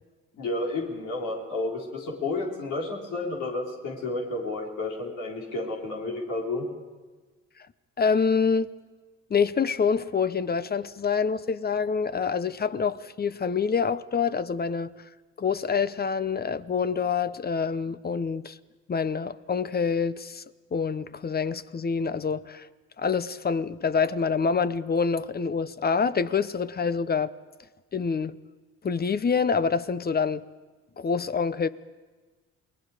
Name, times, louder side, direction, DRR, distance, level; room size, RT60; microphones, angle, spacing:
voice 1, 0.4-6.6, left 2 dB, 85° left, 4.2 m, -31 dB
voice 2, 8.0-8.7 9.3-14.9 15.4-18.6 18.9-20.4 20.7-22.7 23.0-27.3 27.9-28.3 28.8-30.4 31.0-31.7, left 5 dB, 30° left, 0.8 m, -26 dB
29.5 x 20.5 x 5.0 m
cardioid pair, 90°, 30 cm